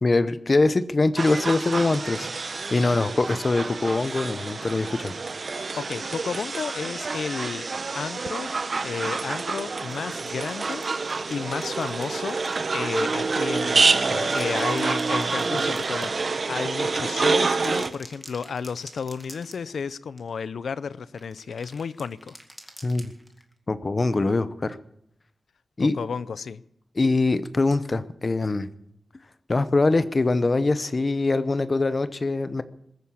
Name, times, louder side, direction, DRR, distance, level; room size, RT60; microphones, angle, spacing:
voice 1, 0.0-5.1 22.8-23.1 23.7-24.8 25.8-26.0 27.0-28.7 29.5-32.6, left 3 dB, 30° left, 13 dB, 0.7 m, -23 dB
sound 1, 1.2-17.9, right 4 dB, 45° right, 0.8 m, -27 dB
voice 2, 5.8-7.7 7.9-8.5 8.8-10.9 11.3-22.4 25.8-26.6, left 6 dB, 80° left, 17 dB, 0.6 m, -32 dB
sound 2, 9.6-13.2 13.9-16.8 17.4-19.9 20.2-20.3 21.2-23.5, equal, ahead, 2.0 m, -48 dB
21.0 x 9.5 x 7.1 m, 0.77 s
wide cardioid pair, 150°, 0 cm